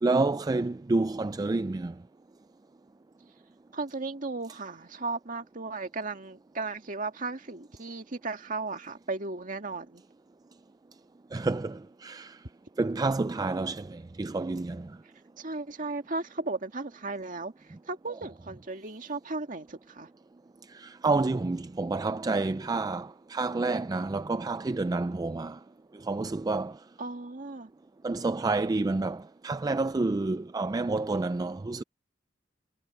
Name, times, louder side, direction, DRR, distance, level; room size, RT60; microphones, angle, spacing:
voice 1, 0.0-1.9 11.3-12.4 12.8-14.9 20.7-25.6 26.0-26.8 28.0-31.8, right 3 dB, 20° right, 0.3 m, -29 dB
voice 2, 3.7-10.0 15.4-20.1 27.0-27.7, right 3 dB, 45° right, 2.0 m, -36 dB
head